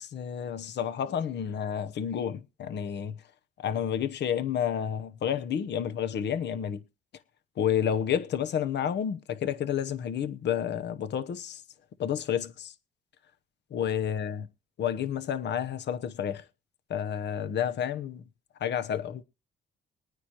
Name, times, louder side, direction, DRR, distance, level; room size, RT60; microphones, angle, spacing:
voice 1, 0.0-3.2 3.6-6.8 7.6-11.6 12.0-12.7 13.7-14.5 14.8-16.4 16.9-18.2 18.6-19.2, left 9 dB, 60° left, 0.9 m, -30 dB
21.5 x 9.3 x 3.0 m
cardioid pair, 90°, 20 cm